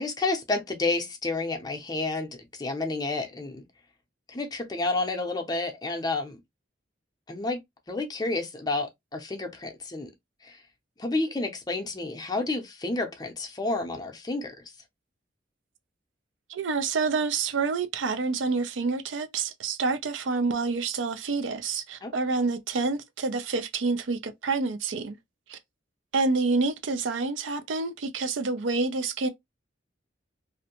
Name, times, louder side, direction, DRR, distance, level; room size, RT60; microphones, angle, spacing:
voice 1, 0.0-3.7 4.3-6.4 7.3-7.6 7.9-10.1 10.4-10.6 11.0-14.5 22.0-22.1, left 2 dB, 20° left, 0.5 m, -30 dB
voice 2, 16.5-25.2 25.5-25.6 26.1-29.3, right 4 dB, 85° right, 0.5 m, -28 dB
2.5 x 2.1 x 2.8 m
head